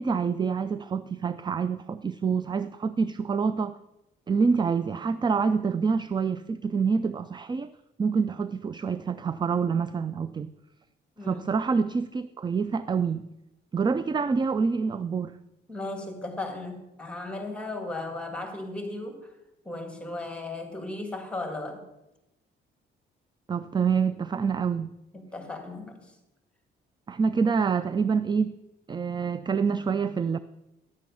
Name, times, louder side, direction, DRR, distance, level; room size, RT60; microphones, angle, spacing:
voice 1, 0.0-3.8 4.3-7.7 8.0-10.5 11.2-13.3 13.7-15.4 23.5-24.9 27.1-28.5 28.9-30.4, right 5 dB, 20° right, 13 dB, 0.4 m, -26 dB
voice 2, 15.7-19.2 19.7-21.8 25.1-26.1, left 2 dB, 5° left, 4 dB, 2.3 m, -36 dB
10.5 x 7.6 x 5.5 m, 0.93 s
cardioid pair, 90°, 20 cm